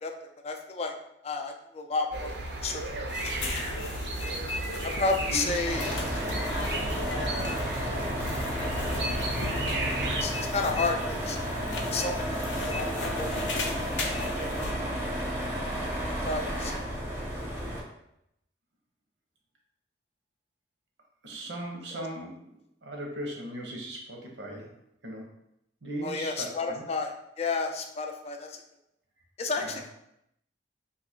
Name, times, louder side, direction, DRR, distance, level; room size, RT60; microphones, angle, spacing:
voice 1, 0.4-0.9 1.2-2.3 2.6-2.8 4.8-5.9 7.1-7.6 10.2-11.4 11.9-12.9 13.2-13.4 13.7-14.3 16.2-16.8 26.0-28.6 29.4-29.9, left 3 dB, 35° left, 4 dB, 0.3 m, -31 dB
sound 1, 2.1-10.2, right 1 dB, 60° right, 0.5 m, -34 dB
sound 2, 3.1-14.7, left 2 dB, 90° left, 0.5 m, -37 dB
sound 3, 5.6-17.8, equal, 15° right, 0.6 m, -32 dB
voice 2, 21.2-24.7 25.0-25.3 25.8-26.8 29.6-29.8, right 1 dB, 90° right, 0 dB, 0.9 m, -38 dB
2.7 x 2.4 x 4.1 m, 0.80 s
head